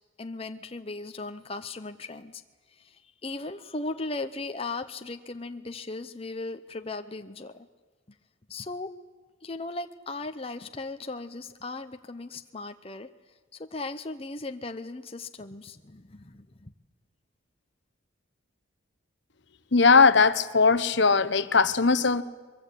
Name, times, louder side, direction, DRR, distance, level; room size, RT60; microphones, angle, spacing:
voice 1, 0.2-2.4 2.7-7.7 8.5-8.9 9.4-13.1 13.5-16.7, left 3 dB, 30° left, 7 dB, 0.8 m, -37 dB
voice 2, 19.7-22.2, left 4 dB, 60° left, 13 dB, 1.0 m, -19 dB
23.5 x 23.0 x 8.5 m, 1.4 s
head